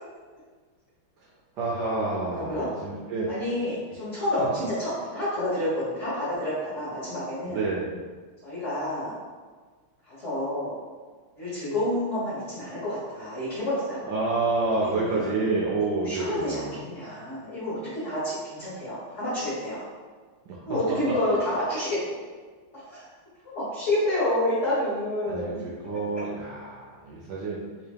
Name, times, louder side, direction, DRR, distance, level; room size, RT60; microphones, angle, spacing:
voice 1, 1.6-3.3 4.6-4.7 7.4-7.9 14.0-16.7 20.5-20.6 25.3-27.6, right 3 dB, 70° right, -5 dB, 1.0 m, -28 dB
voice 2, 2.3-2.7 3.3-7.6 8.4-9.1 10.0-10.7 11.4-14.0 14.8-15.3 16.0-19.8 20.6-22.0 22.8-23.1 23.4-25.6, left 1 dB, 40° left, -10 dB, 1.2 m, -29 dB
3.6 x 2.9 x 3.3 m, 1.5 s
omnidirectional pair, 2.3 m